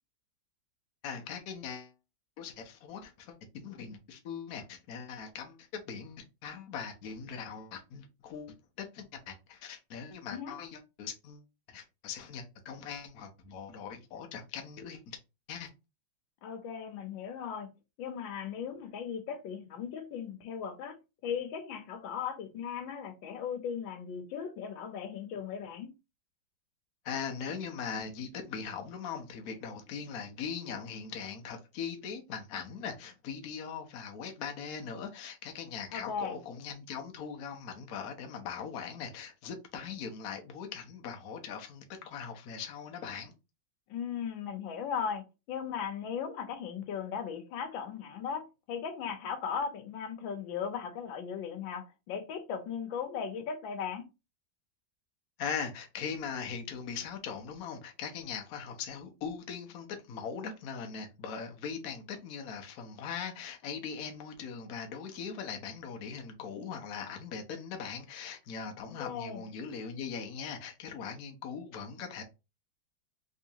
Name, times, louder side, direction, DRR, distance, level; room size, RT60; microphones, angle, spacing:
voice 1, 1.0-1.9 2.4-15.2 15.5-15.7 27.0-43.3 55.4-72.2, left 6 dB, 60° left, 1.1 m, -40 dB
voice 2, 16.4-17.7 18.0-21.0 21.2-25.9 35.9-36.4 43.9-54.0 69.0-69.4, left 7 dB, 85° left, 1.5 m, -37 dB
3.6 x 3.1 x 2.8 m
omnidirectional pair, 2.0 m